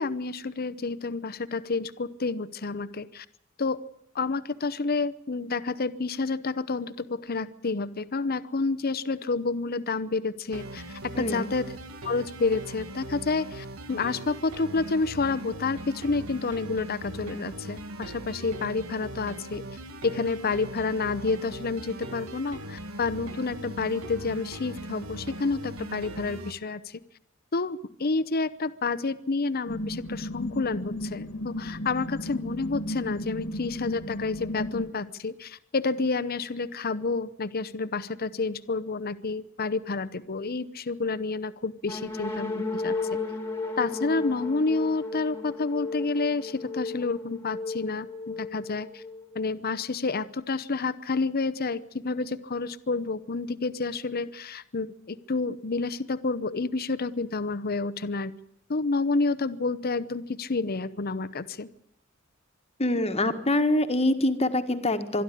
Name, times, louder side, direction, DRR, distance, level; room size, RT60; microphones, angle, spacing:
voice 1, 0.0-3.3 3.6-3.8 4.1-11.7 12.0-19.6 20.0-27.0 27.5-43.1 43.8-49.0 49.3-58.3 58.7-61.7, left 3 dB, 45° left, 14 dB, 0.8 m, -29 dB
sound 1, 10.5-26.5, right 1 dB, 85° right, 1.9 m, -40 dB
voice 2, 11.1-11.5 62.8-65.2, left 1 dB, 30° left, 8 dB, 1.6 m, -25 dB
sound 2, 29.7-34.9, left 1 dB, 75° left, 1.8 m, -35 dB
sound 3, 41.8-49.5, left 3 dB, 10° left, 2.0 m, -34 dB
25.0 x 11.5 x 10.0 m, 0.76 s
head